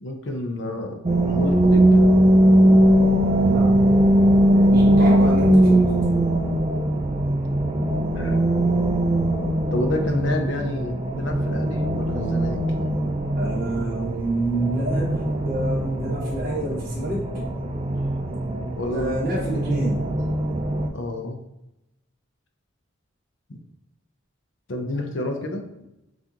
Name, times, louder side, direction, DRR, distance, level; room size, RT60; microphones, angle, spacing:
voice 1, 0.0-1.9 8.1-8.4 9.7-12.6 18.8-19.2 20.9-21.4 23.5-23.6 24.7-25.6, left 1 dB, 60° left, 4 dB, 0.6 m, -29 dB
sound 1, 1.0-20.9, right 1 dB, 25° right, 0.3 m, -20 dB
voice 2, 3.5-3.9 4.6-6.2 13.4-17.3 18.9-20.0, right 1 dB, 45° right, -6 dB, 1.5 m, -27 dB
5.8 x 2.5 x 2.9 m, 0.90 s
head